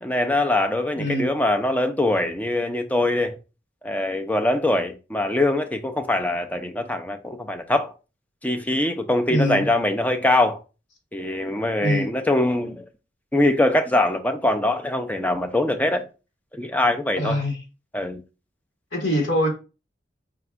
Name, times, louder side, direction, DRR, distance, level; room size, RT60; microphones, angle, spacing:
voice 1, 0.0-3.4 3.8-7.9 8.4-10.6 11.1-12.8 13.3-16.0 16.5-17.4 17.9-18.2, left 1 dB, 10° left, 0.4 m, -23 dB
voice 2, 1.0-1.3 9.3-9.6 11.8-12.1 17.2-17.6 18.9-19.5, equal, 75° left, 1.6 m, -23 dB
4.9 x 2.3 x 3.4 m
head